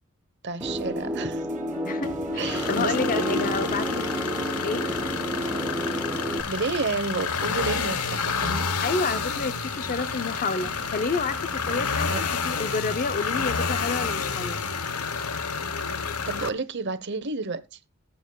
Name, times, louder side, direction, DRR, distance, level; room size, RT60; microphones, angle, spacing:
voice 1, 0.4-1.5 2.4-2.9 3.3-3.4 6.5-8.7 12.1-12.2 16.3-17.8, right 4 dB, 50° right, 0.9 m, -30 dB
sound 1, 0.6-6.4, equal, 5° right, 0.9 m, -30 dB
sound 2, 0.6-12.0, right 1 dB, 35° right, 1.5 m, -45 dB
voice 2, 1.8-4.0 4.6-4.9 8.8-14.6, left 4 dB, 40° left, 0.6 m, -29 dB
sound 3, 2.4-16.5, left 5 dB, 85° left, 1.0 m, -29 dB
21.0 x 7.1 x 2.3 m
head